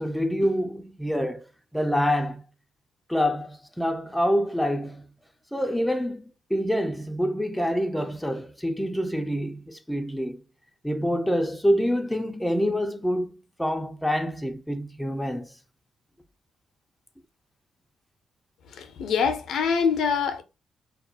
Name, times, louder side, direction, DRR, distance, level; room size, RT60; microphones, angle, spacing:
voice 1, 0.0-1.4 1.7-2.4 3.1-5.1 5.5-10.4 10.8-15.5, equal, 5° left, 0.3 m, -26 dB
voice 2, 18.7-20.4, left 6 dB, 70° left, 0.4 m, -24 dB
2.3 x 2.1 x 2.7 m
cardioid pair, 90°, 0 cm